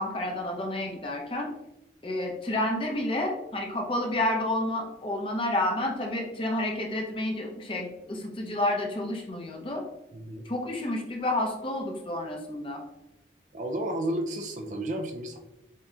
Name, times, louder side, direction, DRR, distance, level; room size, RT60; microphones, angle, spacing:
voice 1, 0.0-1.5 2.0-9.8 10.4-12.8, left 1 dB, 30° left, 1 dB, 0.7 m, -30 dB
voice 2, 10.1-10.4 13.5-15.4, right 1 dB, 45° right, 4 dB, 0.5 m, -32 dB
7.4 x 2.8 x 2.4 m, 0.91 s
head